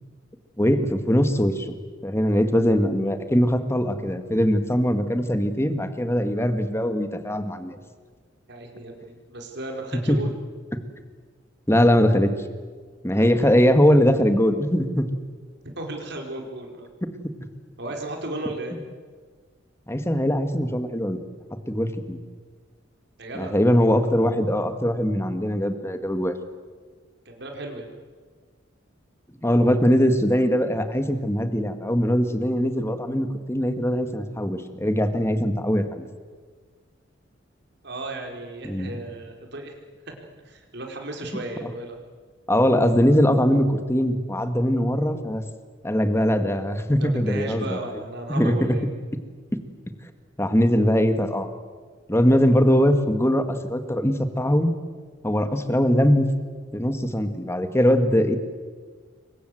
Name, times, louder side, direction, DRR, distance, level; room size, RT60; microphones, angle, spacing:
voice 1, 0.6-1.7 2.0-7.8 10.1-10.2 11.7-12.3 13.0-15.1 17.0-17.2 19.9-21.2 21.7-22.2 23.3-26.4 29.4-36.0 38.6-39.0 42.5-45.4 45.8-47.8 48.3-48.8 49.5-49.6 50.4-51.5 52.1-54.8 55.2-56.3 56.7-58.4, equal, 15° left, 8 dB, 1.9 m, -21 dB
voice 2, 8.5-10.3 13.1-13.7 15.7-16.9 17.8-18.8 23.2-23.5 27.2-27.9 37.8-39.8 40.1-40.2 40.4-42.0 47.0-48.9, right 2 dB, 60° right, 2 dB, 4.8 m, -35 dB
29.0 x 24.0 x 7.8 m, 1.5 s
head